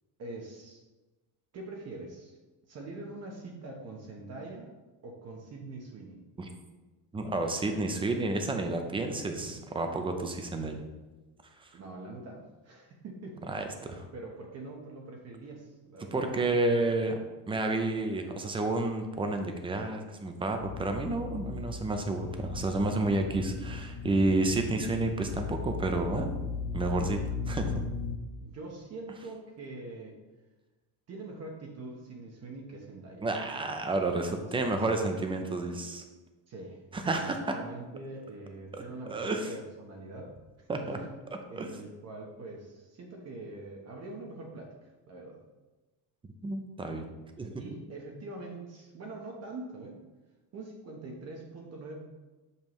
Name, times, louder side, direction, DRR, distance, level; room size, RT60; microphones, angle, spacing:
voice 1, 0.2-0.8 1.5-2.3 2.7-4.7 5.0-6.2 11.7-13.8 14.1-16.2 28.4-30.2 31.1-33.3 34.4-34.8 36.5-36.8 37.1-37.2 37.5-40.7 41.5-45.4 47.6-50.0 50.5-52.0, right 2 dB, 35° right, 0 dB, 1.0 m, -44 dB
voice 2, 7.1-10.8 11.6-11.7 13.5-14.0 16.1-17.2 17.5-26.3 26.7-27.2 27.5-27.7 33.2-36.0 36.9-37.6 39.1-39.5 40.7-41.0 41.6-41.7 46.4-47.1 47.4-47.6, right 2 dB, 10° right, 5 dB, 0.5 m, -30 dB
sound 1, 20.6-28.2, left 5 dB, 65° left, 0.9 m, -37 dB
6.7 x 5.5 x 3.1 m, 1.2 s
cardioid pair, 150°, 43 cm